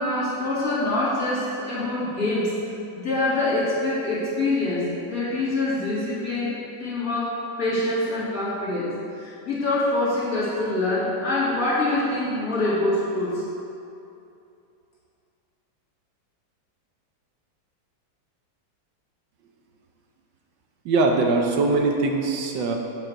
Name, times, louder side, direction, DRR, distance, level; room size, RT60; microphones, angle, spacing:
voice 1, 0.0-2.5 2.9-6.5 6.8-13.4, left 2 dB, 45° left, -9 dB, 2.6 m, -25 dB
voice 2, 20.8-22.8, right 3 dB, 70° right, 2 dB, 1.5 m, -21 dB
7.8 x 7.5 x 4.6 m, 2.7 s
omnidirectional pair, 2.1 m